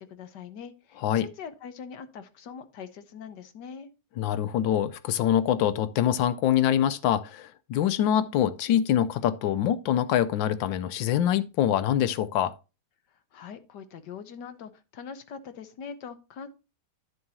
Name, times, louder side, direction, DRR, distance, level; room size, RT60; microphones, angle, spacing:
voice 1, 0.0-3.9 13.1-16.5, left 6 dB, 70° left, 1.6 m, -42 dB
voice 2, 4.2-12.6, left 10 dB, 85° left, 1.4 m, -25 dB
11.0 x 7.3 x 2.9 m
omnidirectional pair, 2.0 m